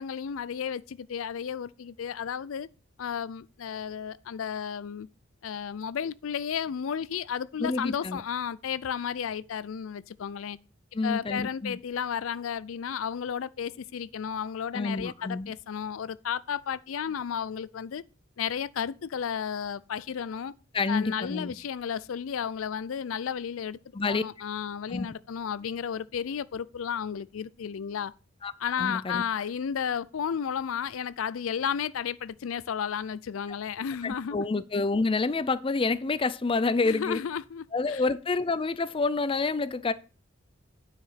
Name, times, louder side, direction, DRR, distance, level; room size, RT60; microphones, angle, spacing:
voice 1, 0.0-2.7 3.0-5.1 5.4-10.6 11.0-18.0 18.4-20.5 20.9-23.8 24.1-28.1 28.6-34.5 36.8-38.0, left 7 dB, 85° left, 0.4 m, -33 dB
voice 2, 7.6-8.2 10.9-11.8 14.7-15.5 20.7-21.5 23.9-24.2 24.9-25.1 28.4-28.5 28.8-29.2 34.0-37.2 37.7-39.9, left 3 dB, 25° left, 0.4 m, -28 dB
9.5 x 4.9 x 5.7 m
head